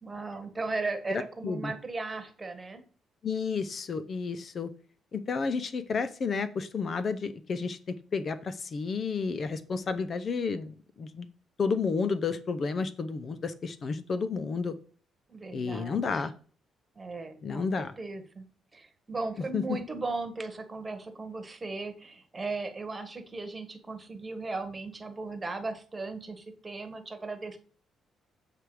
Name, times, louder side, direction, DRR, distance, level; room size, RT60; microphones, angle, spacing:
voice 1, 0.0-2.8 15.3-16.3 16.9-18.4 18.7-27.6, right 3 dB, 25° right, 7 dB, 1.2 m, -37 dB
voice 2, 1.1-1.7 3.2-4.7 5.1-7.8 8.1-11.3 11.6-14.7 15.5-16.3 17.4-17.9 19.5-19.8, left 5 dB, 45° left, 12 dB, 0.5 m, -31 dB
7.5 x 3.4 x 4.7 m, 0.43 s
cardioid pair, 90°, 0 cm